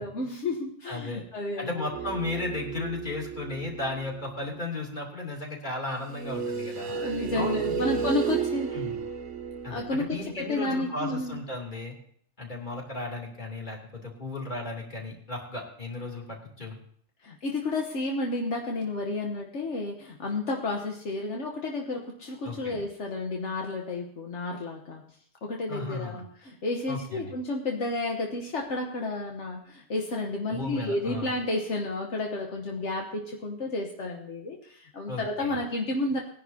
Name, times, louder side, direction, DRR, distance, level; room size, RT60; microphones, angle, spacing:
voice 1, 0.0-1.8 6.8-8.7 9.7-11.4 17.2-25.0 25.4-36.2, left 2 dB, 75° left, 1 dB, 1.5 m, -31 dB
voice 2, 0.8-1.2 1.6-6.9 7.3-8.0 8.7-9.0 9.6-11.9 12.4-16.8 22.4-22.7 25.7-26.2 26.9-27.3 30.5-31.3 35.1-35.6, left 2 dB, 40° left, -1 dB, 3.1 m, -35 dB
sound 1, 1.9-4.2 6.1-10.8, right 7 dB, 85° right, 1.4 m, -33 dB
20.0 x 10.5 x 2.8 m, 0.62 s
omnidirectional pair, 1.2 m